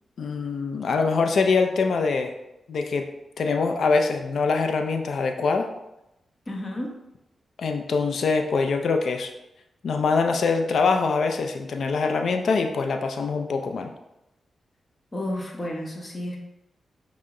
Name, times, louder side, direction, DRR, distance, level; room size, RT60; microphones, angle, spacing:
voice 1, 0.2-2.3 2.7-3.1 3.4-5.7 7.6-9.3 9.8-13.9, left 4 dB, 70° left, 5 dB, 0.4 m, -24 dB
voice 2, 6.5-7.0 15.1-16.4, left 1 dB, 35° left, 0 dB, 1.0 m, -31 dB
5.6 x 2.1 x 3.7 m, 0.90 s
cardioid pair, 55°, 0 cm